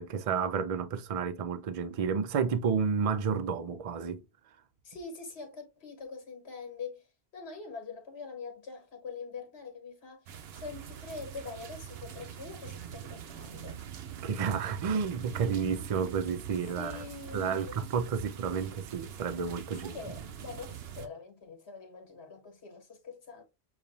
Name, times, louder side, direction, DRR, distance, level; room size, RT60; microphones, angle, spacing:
voice 1, 0.0-4.2 14.2-17.0 17.3-20.0, right 6 dB, 50° right, 0.4 m, -31 dB
voice 2, 4.8-7.1 7.3-13.8 16.8-17.8 19.8-23.4, left 4 dB, 75° left, 1.5 m, -44 dB
sound 1, 10.3-21.1, right 9 dB, 75° right, 0.8 m, -43 dB
6.9 x 2.4 x 2.6 m
omnidirectional pair, 1.1 m